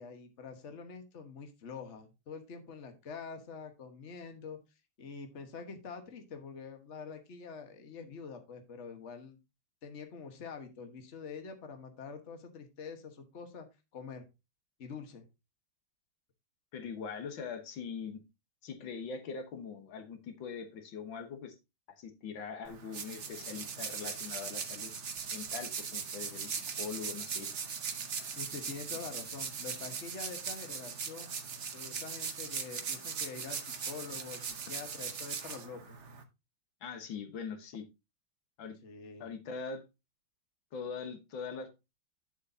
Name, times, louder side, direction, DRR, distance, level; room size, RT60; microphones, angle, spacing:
voice 1, 0.0-4.6 5.0-9.4 9.8-13.7 13.9-14.2 14.8-15.2 28.4-31.4 31.7-34.4 34.7-36.0 38.8-39.3, left 5 dB, 40° left, 1.5 m, -45 dB
voice 2, 16.7-18.2 18.6-21.6 22.0-24.9 25.3-27.5 28.9-29.0 36.8-37.9 38.6-38.7 39.2-39.8 40.7-41.7, left 5 dB, 80° left, 1.9 m, -42 dB
sound 1, 22.6-36.2, right 6 dB, 45° right, 1.1 m, -39 dB
9.3 x 7.4 x 2.7 m
omnidirectional pair, 2.1 m